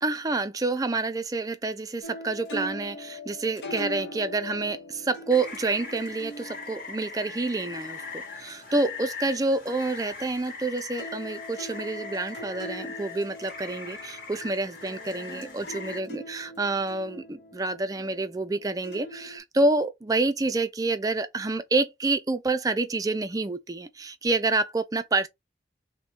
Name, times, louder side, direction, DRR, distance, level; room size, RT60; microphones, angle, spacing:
voice 1, 0.0-25.3, right 3 dB, 20° right, 0.4 m, -28 dB
sound 1, 2.0-10.6 10.9-19.4, equal, 65° left, 1.1 m, -42 dB
Rain, 5.3-16.0, left 4 dB, 50° left, 1.6 m, -41 dB
5.3 x 2.1 x 2.8 m
head